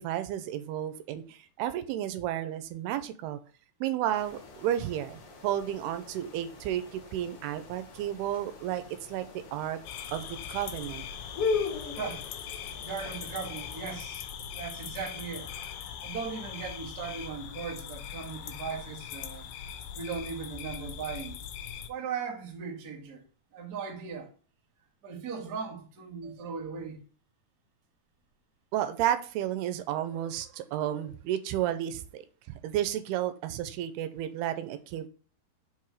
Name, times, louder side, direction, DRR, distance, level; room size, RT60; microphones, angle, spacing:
voice 1, 0.0-3.4 3.8-8.8 9.1-9.3 9.5-9.8 10.1-11.1 28.7-32.2 32.5-35.1, right 11 dB, 90° right, 2.6 m, -32 dB
sound 1, 4.1-14.0, left 4 dB, 55° left, 1.7 m, -39 dB
sound 2, 9.9-21.9, left 8 dB, 80° left, 2.2 m, -41 dB
voice 2, 11.9-12.3 12.8-14.3 14.6-15.5 16.0-19.4 19.9-21.3 21.9-23.2 23.5-24.3 25.0-27.0, right 6 dB, 45° right, 1.2 m, -38 dB
5.6 x 4.8 x 4.7 m
omnidirectional pair, 4.6 m